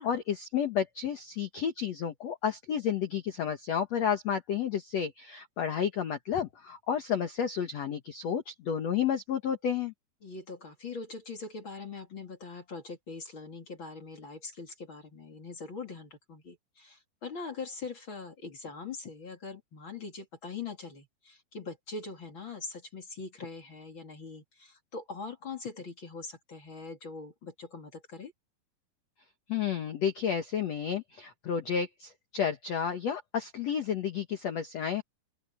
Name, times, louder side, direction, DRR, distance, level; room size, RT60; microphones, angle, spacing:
voice 1, 0.0-9.9 29.5-35.0, left 8 dB, 70° left, 1.6 m, -31 dB
voice 2, 10.2-28.3, left 4 dB, 35° left, 2.5 m, -42 dB
open air
omnidirectional pair, 5.0 m